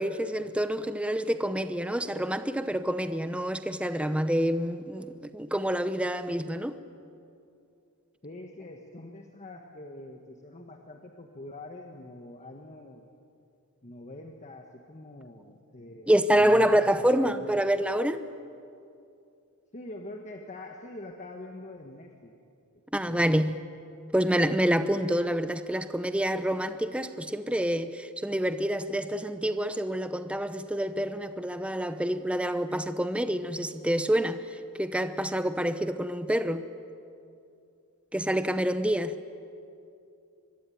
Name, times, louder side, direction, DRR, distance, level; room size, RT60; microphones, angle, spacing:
voice 1, 0.0-6.8 16.1-18.2 22.9-23.6 24.1-34.4 34.8-36.6 38.1-39.1, equal, 5° right, 0.8 m, -27 dB
voice 2, 8.2-13.1 13.8-17.6 19.7-22.3 23.1-23.3, left 2 dB, 35° left, 1.5 m, -44 dB
24.0 x 23.0 x 9.3 m
head